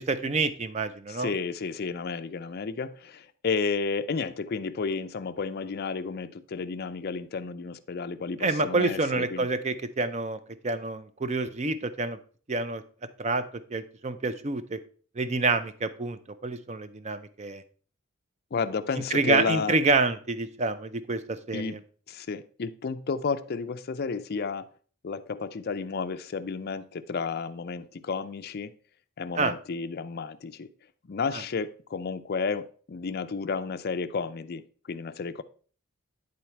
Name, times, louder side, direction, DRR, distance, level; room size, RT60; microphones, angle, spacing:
voice 1, 0.0-1.3 8.4-10.4 10.6-12.2 12.5-12.8 13.2-13.4 13.7-14.8 15.2-17.6 19.1-21.8 29.3-29.5 31.3-31.4, right 3 dB, 35° right, 12 dB, 0.5 m, -27 dB
voice 2, 1.1-9.5 18.5-19.8 21.5-21.8 22.1-24.7 25.0-28.7 29.2-30.7 31.1-34.6 34.9-35.4, left 5 dB, 50° left, 10 dB, 0.5 m, -32 dB
9.7 x 4.0 x 4.4 m, 0.43 s
head